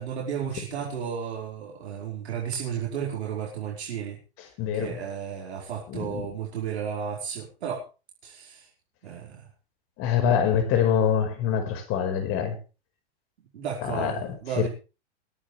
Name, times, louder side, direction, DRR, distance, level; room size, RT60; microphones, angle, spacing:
voice 1, 0.0-4.2 4.7-7.8 8.2-8.7 9.0-9.5 13.5-14.7, right 7 dB, 75° right, 5.1 m, -33 dB
voice 2, 4.6-5.0 5.9-6.3 10.0-12.6 13.8-14.7, left 8 dB, 45° left, 5.1 m, -25 dB
21.5 x 11.5 x 3.4 m
hypercardioid pair, 100°, 33 cm